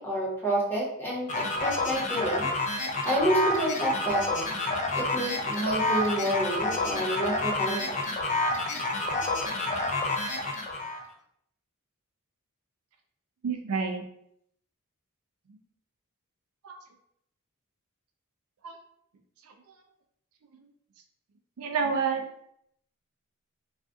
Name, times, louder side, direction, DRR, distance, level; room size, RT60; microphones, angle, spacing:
voice 1, 0.0-2.5 3.0-4.6 4.9-8.0, right 1 dB, 10° left, -6 dB, 1.1 m, -29 dB
sound 1, 1.3-11.0, left 2 dB, 35° left, 0.5 m, -29 dB
voice 2, 13.4-14.0 16.6-16.8 18.6-18.8 19.4-19.5 21.6-22.2, right 5 dB, 70° right, 4 dB, 0.4 m, -29 dB
2.5 x 2.4 x 3.5 m, 0.72 s
head